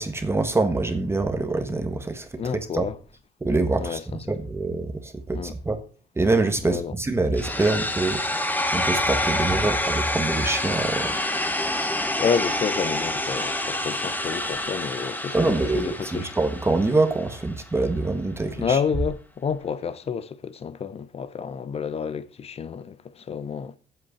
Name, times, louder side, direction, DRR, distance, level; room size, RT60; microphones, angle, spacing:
voice 1, 0.0-2.9 3.4-4.0 4.3-5.8 6.2-8.2 8.7-11.1 15.3-18.8, right 3 dB, 15° right, 1.4 m, -25 dB
voice 2, 2.4-3.0 3.8-4.2 5.3-5.6 6.6-6.9 11.8-16.3 18.6-23.8, left 6 dB, 35° left, 0.9 m, -29 dB
sound 1, 7.4-17.3, left 1 dB, 10° left, 1.4 m, -27 dB
7.9 x 7.7 x 7.2 m
cardioid pair, 110°, 17 cm